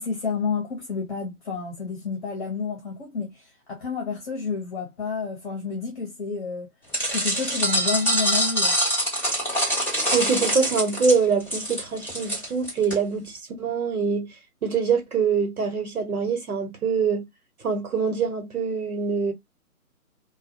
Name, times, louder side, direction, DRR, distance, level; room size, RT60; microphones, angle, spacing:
voice 1, 0.0-6.7 7.1-8.7, left 5 dB, 35° left, 0.8 m, -30 dB
sound 1, 6.9-12.9, equal, 5° right, 0.6 m, -24 dB
voice 2, 10.1-14.3 14.6-17.2 17.6-19.3, right 5 dB, 75° right, 1.3 m, -24 dB
2.4 x 2.2 x 2.5 m
figure-of-eight pair, 150°, 45 cm